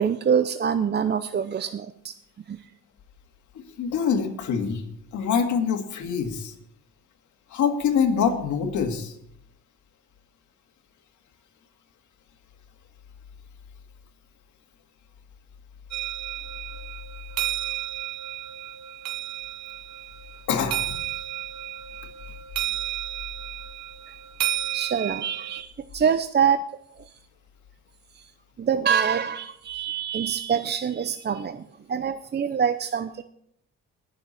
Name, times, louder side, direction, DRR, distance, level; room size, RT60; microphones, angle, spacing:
voice 1, 0.0-2.1 2.5-2.7 24.7-26.6 27.0-27.2 28.1-28.3 28.6-33.2, right 7 dB, 35° right, 10 dB, 0.6 m, -25 dB
voice 2, 3.8-4.8 5.1-6.5 7.5-9.1 20.5-21.0, left 6 dB, 75° left, 4 dB, 2.1 m, -25 dB
sound 1, 15.9-25.6, right 13 dB, 65° right, 0.8 m, -32 dB
20.5 x 7.0 x 4.2 m, 0.72 s
cardioid pair, 90°, 30 cm